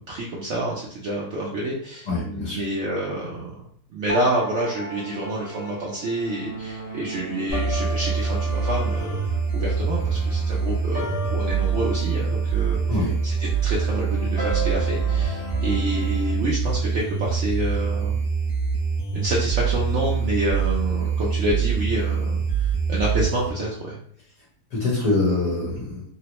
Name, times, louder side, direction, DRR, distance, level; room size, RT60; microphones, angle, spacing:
voice 1, 0.1-3.6 3.9-18.2 19.1-24.0, right 1 dB, 70° right, -4 dB, 0.7 m, -28 dB
voice 2, 2.1-2.6 12.9-13.2 24.7-26.0, left 2 dB, 55° left, -6 dB, 1.4 m, -24 dB
sound 1, 4.1-16.3, equal, 15° right, 0.8 m, -35 dB
sound 2, 7.5-23.5, right 6 dB, 85° left, 1.3 m, -24 dB
3.8 x 2.0 x 2.9 m, 0.63 s
omnidirectional pair, 1.8 m